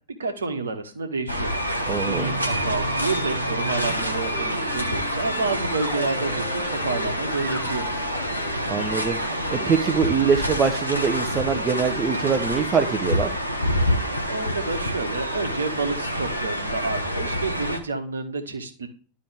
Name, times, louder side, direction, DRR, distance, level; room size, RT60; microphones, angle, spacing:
voice 1, 0.2-7.9 14.3-18.9, right 3 dB, 70° right, 7 dB, 1.2 m, -29 dB
sound 1, 1.3-17.8, equal, 90° left, 1.2 m, -27 dB
voice 2, 1.9-2.3 8.7-9.2 9.5-13.4, right 6 dB, 25° right, 6 dB, 0.7 m, -23 dB
sound 2, 2.0-10.6, equal, 15° left, 3.2 m, -38 dB
12.0 x 4.8 x 3.4 m, 0.39 s
figure-of-eight pair, 90°, 0 cm